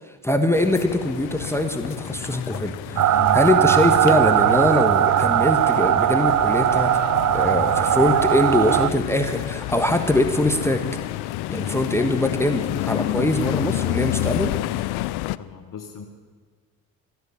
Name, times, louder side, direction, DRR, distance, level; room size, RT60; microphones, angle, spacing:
voice 1, 0.2-7.0 7.3-10.8 11.5-14.5, left 1 dB, 5° left, 5 dB, 1.3 m, -22 dB
sound 1, 0.5-15.4, left 17 dB, 75° left, 0.5 m, -30 dB
sound 2, 3.0-8.9, right 12 dB, 50° right, 0.6 m, -19 dB
voice 2, 3.1-3.5 12.9-13.3 14.8-15.1 15.4-16.1, left 7 dB, 55° left, 4 dB, 1.3 m, -36 dB
14.5 x 11.0 x 7.0 m, 1.4 s
supercardioid pair, 55°, 38 cm